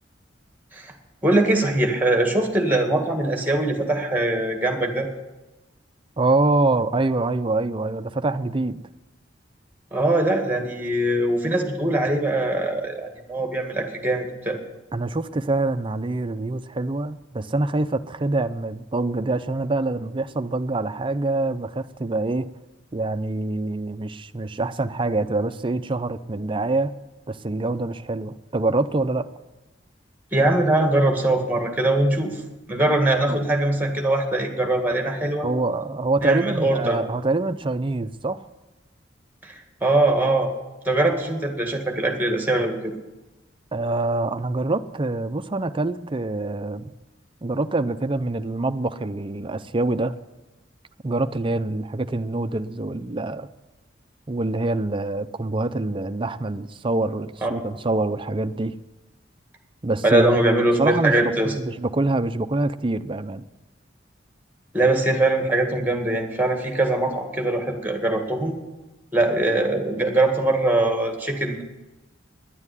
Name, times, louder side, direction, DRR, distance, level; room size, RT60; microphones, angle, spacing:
voice 1, 1.2-5.1 9.9-14.6 30.3-32.4 32.7-35.5 36.2-37.0 39.4-40.5 40.9-42.9 57.4-57.5 60.0-61.5 64.7-68.5 69.1-71.6, right 2 dB, 10° right, 2.0 m, -22 dB
voice 2, 6.2-8.8 14.9-22.5 22.9-26.9 27.3-29.3 33.3-33.4 35.4-38.5 43.7-46.9 47.4-50.1 51.0-53.5 54.3-58.8 59.8-60.4 60.8-61.2 61.4-63.4, right 2 dB, 30° right, 0.5 m, -25 dB
10.5 x 9.6 x 9.8 m
head